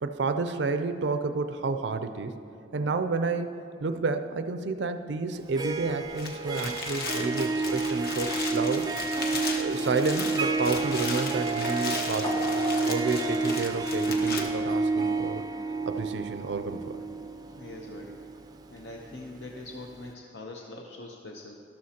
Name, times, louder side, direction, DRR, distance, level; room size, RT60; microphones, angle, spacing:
voice 1, 0.0-2.3 2.7-8.9 9.5-12.5 12.9-15.4 15.9-17.0, right 4 dB, 80° right, 8 dB, 0.4 m, -30 dB
Harp, 5.4-19.3, right 3 dB, 20° right, 0.4 m, -30 dB
sound 1, 6.0-14.4, left 3 dB, 55° left, 1.1 m, -36 dB
sound 2, 12.2-14.8 15.2-15.3, left 3 dB, 25° left, 0.7 m, -41 dB
voice 2, 17.6-18.2 18.7-21.6, left 2 dB, 75° left, 0 dB, 0.7 m, -43 dB
12.5 x 12.0 x 2.8 m, 2.7 s
head